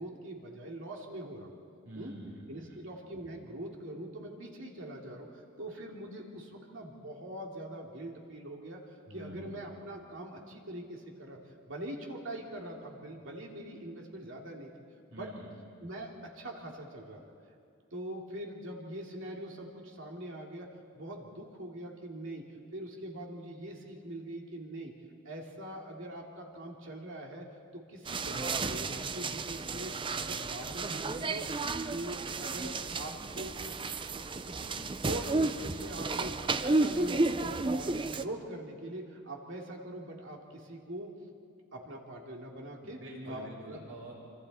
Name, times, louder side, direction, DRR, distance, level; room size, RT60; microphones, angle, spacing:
voice 1, 0.0-1.5 1.9-2.2 2.5-11.4 11.7-14.7 15.1-15.3 15.8-17.2 17.9-20.7 20.9-22.5 22.7-24.9 25.2-27.5 27.7-31.5 31.9-33.8 34.4-34.8 35.0-41.1 41.7-43.0 43.2-43.9, right 1 dB, 65° right, -1 dB, 2.9 m, -43 dB
voice 2, 1.8-2.8 9.1-9.6 15.1-15.5 42.8-44.1, right 1 dB, 85° right, -5 dB, 7.8 m, -46 dB
sound 1, 28.0-38.2, right 3 dB, 25° right, 0.5 m, -32 dB
27.5 x 25.5 x 4.3 m, 2.4 s
head